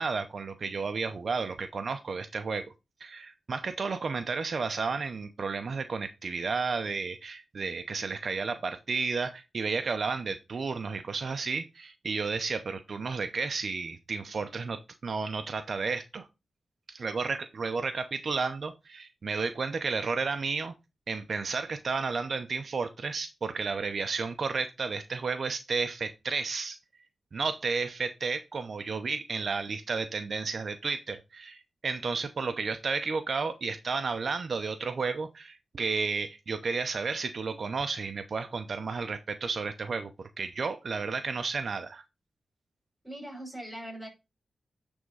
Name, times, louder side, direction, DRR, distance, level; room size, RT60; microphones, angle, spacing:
voice 1, 0.0-2.7 3.0-16.3 16.9-20.7 21.1-26.8 27.3-42.0, right 4 dB, 60° right, 0.6 m, -32 dB
voice 2, 43.0-44.1, right 1 dB, ahead, 5.3 m, -40 dB
9.6 x 3.5 x 5.4 m
cardioid pair, 80°, 0 cm